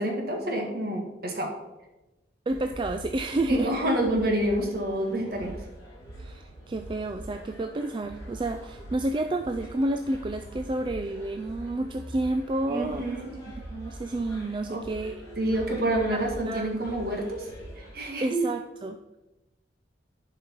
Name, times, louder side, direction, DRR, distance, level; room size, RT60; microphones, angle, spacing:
voice 1, 0.0-1.5 3.5-5.6 12.7-13.3 14.7-14.8 15.4-17.5 17.8-18.4, right 1 dB, 55° right, 2 dB, 1.7 m, -28 dB
sound 1, 2.5-17.9, equal, 20° left, 2.8 m, -43 dB
voice 2, 2.5-3.7 6.2-13.0 13.7-15.1 16.1-17.0 18.2-19.2, right 2 dB, 25° right, 6 dB, 0.3 m, -30 dB
11.0 x 5.0 x 4.5 m, 1.0 s
head